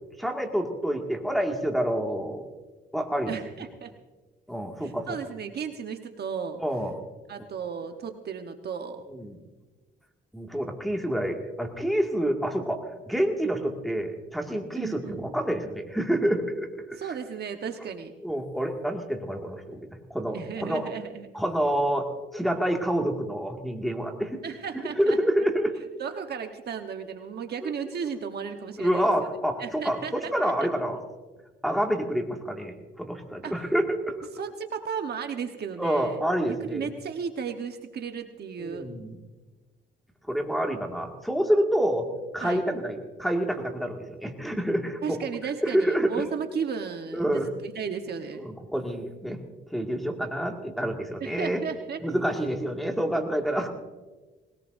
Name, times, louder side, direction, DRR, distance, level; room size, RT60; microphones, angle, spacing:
voice 1, 0.2-2.4 2.9-3.3 4.5-5.2 6.6-6.9 9.1-9.4 10.3-17.1 18.2-20.9 21.3-24.4 25.0-25.7 27.6-27.7 28.8-31.0 31.6-34.2 35.8-36.9 38.6-39.2 40.3-42.1 42.3-45.2 45.6-46.2 47.1-47.5 48.4-49.4 49.7-51.6 52.0-53.7, equal, ahead, 1 dB, 2.0 m, -28 dB
voice 2, 3.3-3.9 4.8-6.6 7.3-9.0 14.7-15.3 17.0-18.1 20.3-21.3 24.4-25.2 26.0-29.1 29.6-30.5 33.4-33.5 34.4-36.2 36.6-38.9 42.4-42.6 45.0-48.4 51.2-52.0, right 6 dB, 55° right, 6 dB, 1.1 m, -34 dB
20.0 x 18.0 x 2.6 m, 1.2 s
cardioid pair, 90°, 20 cm